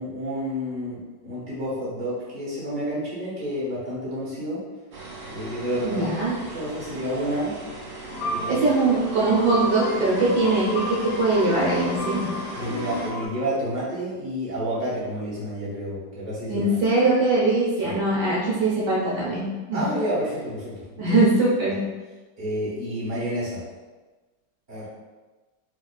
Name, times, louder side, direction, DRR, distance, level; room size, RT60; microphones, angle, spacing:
voice 1, 0.0-4.6 5.3-6.2 6.5-7.5 8.3-8.7 12.5-16.6 17.8-18.0 19.7-21.2 22.4-23.6 24.7-24.8, equal, 30° right, -9 dB, 1.4 m, -30 dB
sound 1, 4.9-13.1, right 2 dB, 55° right, 0.6 m, -38 dB
voice 2, 5.8-6.4 8.5-12.3 16.5-19.8 21.0-21.8, right 2 dB, 75° right, -6 dB, 1.3 m, -22 dB
sound 2, 8.1-13.3, left 1 dB, 85° left, 1.2 m, -31 dB
4.7 x 2.4 x 2.4 m, 1.2 s
omnidirectional pair, 1.9 m